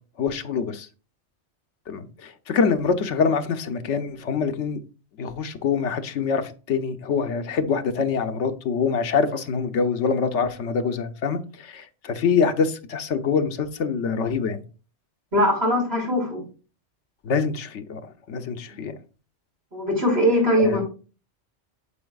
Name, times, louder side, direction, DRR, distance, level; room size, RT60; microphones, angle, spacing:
voice 1, 0.2-0.9 1.9-4.8 5.2-14.6 17.2-18.9 20.6-20.8, left 5 dB, 90° left, 1.1 m, -25 dB
voice 2, 15.3-16.4 19.7-20.8, equal, 60° right, 3.8 m, -21 dB
8.6 x 7.0 x 2.3 m
omnidirectional pair, 1.2 m